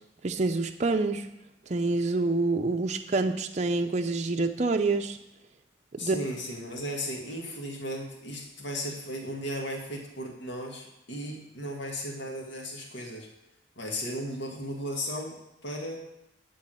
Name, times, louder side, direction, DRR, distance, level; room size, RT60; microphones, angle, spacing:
voice 1, 0.2-1.3 1.7-5.2 6.0-6.2, right 3 dB, 40° right, 5 dB, 0.5 m, -27 dB
voice 2, 6.0-13.3 13.8-15.4 15.6-16.0, equal, 80° left, 0 dB, 1.7 m, -35 dB
11.5 x 3.9 x 7.7 m, 0.87 s
head